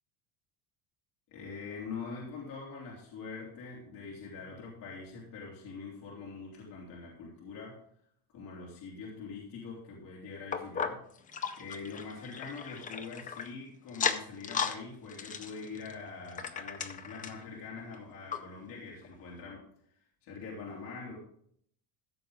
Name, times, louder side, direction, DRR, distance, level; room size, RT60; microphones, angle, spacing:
voice 1, 1.3-7.8 8.3-11.0 11.6-19.6 19.9-21.2, left 4 dB, 50° left, -4 dB, 3.1 m, -44 dB
sound 1, 10.5-13.5 13.9-14.8 15.1-17.5 17.9-18.0 18.3-18.4 19.0-19.1, left 6 dB, 20° left, 0.5 m, -36 dB
15.0 x 7.1 x 3.9 m, 0.66 s
cardioid pair, 170°, 43 cm